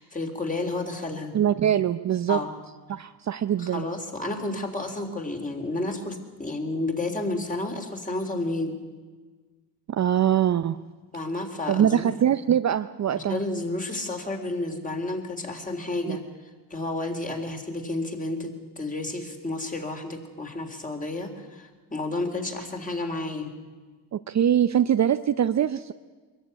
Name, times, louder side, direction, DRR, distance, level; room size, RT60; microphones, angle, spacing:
voice 1, 0.0-1.4 2.3-2.5 3.6-8.8 11.1-12.1 13.1-16.2 16.7-23.5, left 2 dB, 20° left, 3 dB, 3.6 m, -31 dB
voice 2, 1.3-2.4 2.9-3.8 9.9-10.8 11.7-13.4 16.0-16.2 24.1-25.9, right 10 dB, 40° right, 11 dB, 0.7 m, -23 dB
22.5 x 14.5 x 9.7 m, 1.4 s
cardioid pair, 90°, 42 cm